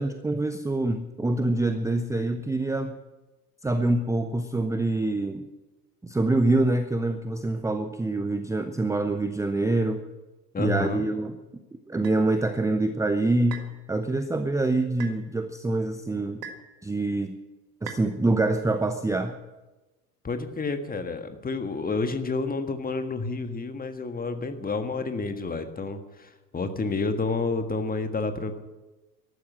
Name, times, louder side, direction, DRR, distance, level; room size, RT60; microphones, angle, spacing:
voice 1, 0.0-3.0 3.6-5.4 6.0-10.0 10.6-11.3 11.9-13.6 13.9-16.4 16.8-17.3 17.8-19.4, right 2 dB, 5° right, 9 dB, 0.8 m, -25 dB
voice 2, 10.5-11.1 20.2-28.6, left 3 dB, 20° left, 8 dB, 1.6 m, -30 dB
sound 1, 12.0-12.2 13.5-13.8 15.0-15.2 16.4-16.7 17.9-18.1, right 6 dB, 75° right, 1.9 m, -39 dB
14.0 x 12.0 x 7.5 m, 1.1 s
figure-of-eight pair, 70°, 49 cm